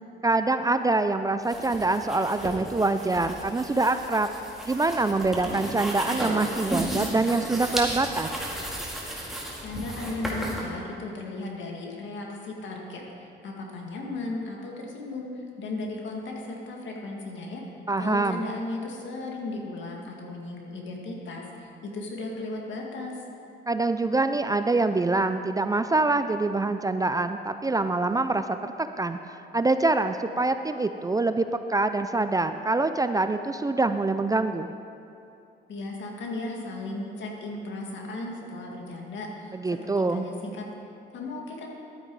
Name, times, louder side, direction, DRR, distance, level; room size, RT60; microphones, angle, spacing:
voice 1, 0.2-4.3 4.6-8.3 17.9-18.5 23.7-34.7 39.5-40.3, right 3 dB, 20° right, 9 dB, 0.4 m, -25 dB
sound 1, 1.4-10.6, equal, ahead, 2.1 m, -34 dB
voice 2, 9.6-17.6 18.0-23.2 35.7-39.6 39.8-40.7 41.1-41.7, left 2 dB, 70° left, 0 dB, 2.0 m, -36 dB
11.5 x 8.8 x 4.8 m, 2.6 s
cardioid pair, 90°, 20 cm